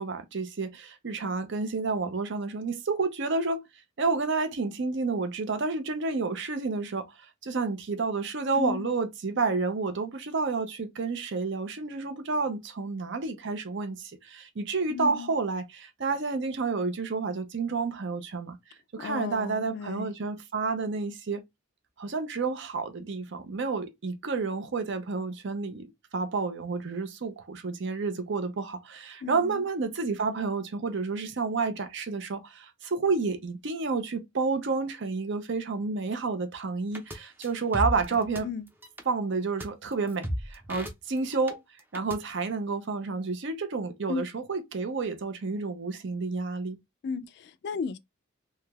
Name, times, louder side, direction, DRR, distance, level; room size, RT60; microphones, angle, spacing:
voice 1, 0.0-3.7 4.0-18.6 18.9-21.4 22.0-38.5 39.1-41.6 41.9-46.8, right 4 dB, 60° right, 0.6 m, -30 dB
voice 2, 8.5-8.9 14.9-15.3 19.0-20.1 29.2-29.6 38.4-38.6 44.1-44.2 47.0-48.0, left 5 dB, 55° left, 0.3 m, -34 dB
sound 1, 36.9-37.2 37.4-38.4 38.7-39.0 39.6-39.7 39.9-41.5 41.8-42.2, equal, 10° right, 0.5 m, -34 dB
3.2 x 2.8 x 2.3 m
head